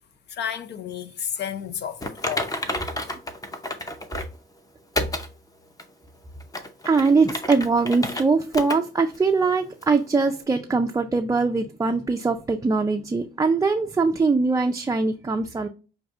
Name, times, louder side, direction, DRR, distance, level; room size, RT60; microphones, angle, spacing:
voice 1, 0.3-2.6, left 8 dB, 60° left, 0.5 m, -32 dB
Typing, 2.0-4.4 4.9-5.3 5.8-5.9 6.4-8.2 8.5-8.8 9.1-9.2 9.8-9.9, left 1 dB, 20° left, 0.7 m, -30 dB
voice 2, 6.8-15.7, right 4 dB, 15° right, 0.4 m, -22 dB
6.1 x 2.6 x 2.4 m
cardioid pair, 90°, 20 cm